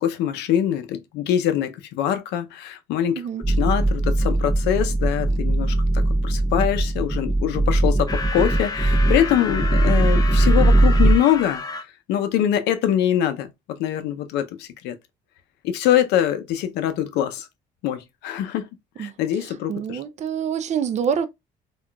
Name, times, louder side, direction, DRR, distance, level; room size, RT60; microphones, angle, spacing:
voice 1, 0.0-11.6 12.1-13.5 13.8-15.0 15.6-17.5 17.8-18.7 19.0-20.0, left 10 dB, 85° left, 0.5 m, -23 dB
sound 1, 3.4-11.2, right 2 dB, 10° right, 0.7 m, -20 dB
sound 2, 8.1-11.8, left 4 dB, 20° left, 0.4 m, -31 dB
voice 2, 19.7-21.3, right 7 dB, 45° right, 0.4 m, -26 dB
3.7 x 2.4 x 2.2 m
cardioid pair, 110°, 17 cm